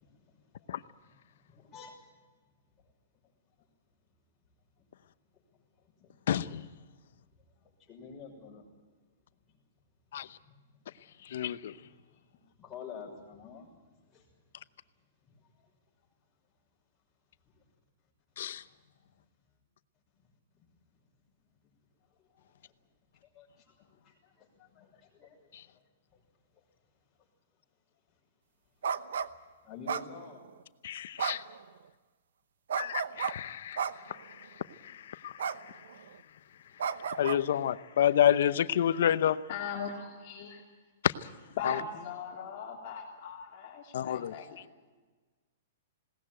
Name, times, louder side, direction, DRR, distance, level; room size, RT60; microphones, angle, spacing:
voice 1, 0.0-2.1 2.8-2.9 3.6-3.7 4.8-4.9 5.5-6.1 7.3-8.7 9.5-9.6 10.4-11.2 11.8-14.4 15.2-15.7 17.4-17.7 19.0-19.3 20.5-20.7 22.0-22.7 23.2-26.2 26.5-26.6 27.2-27.3 28.1-28.2 28.8-29.1 29.6-30.4, left 5 dB, 10° left, 6.0 m, -52 dB
voice 2, 6.3-6.7 10.1-10.4 11.2-11.8 18.4-18.6 30.8-31.4 32.8-35.8 37.0-39.4 41.6-41.8 43.9-44.4, left 10 dB, 60° left, 0.8 m, -30 dB
sound 1, 28.8-29.3 29.9-30.5 31.2-31.6 32.7-33.3 33.8-34.2 35.4-35.6 35.9-36.2 36.8-37.4, right 7 dB, 80° right, 0.9 m, -33 dB
voice 3, 39.5-40.6 41.6-44.6, left 6 dB, 40° left, 2.9 m, -39 dB
20.5 x 18.0 x 8.9 m
hypercardioid pair, 170°, 0 cm